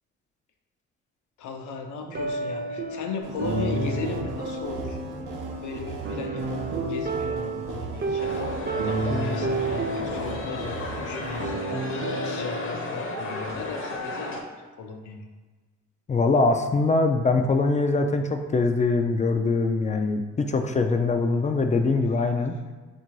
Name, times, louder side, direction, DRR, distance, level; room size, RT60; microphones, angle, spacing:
voice 1, 1.4-5.0 5.6-8.3 8.8-15.2, left 5 dB, 75° left, 3 dB, 0.7 m, -37 dB
sound 1, 2.1-12.8, right 2 dB, 30° right, 0.6 m, -31 dB
sound 2, 3.2-11.5, right 4 dB, 85° right, 0.8 m, -37 dB
sound 3, 8.2-14.4, left 2 dB, 45° left, 0.8 m, -34 dB
voice 2, 16.1-22.5, left 3 dB, 25° left, 6 dB, 0.3 m, -23 dB
3.5 x 2.7 x 4.5 m, 1.4 s
cardioid pair, 90°, 30 cm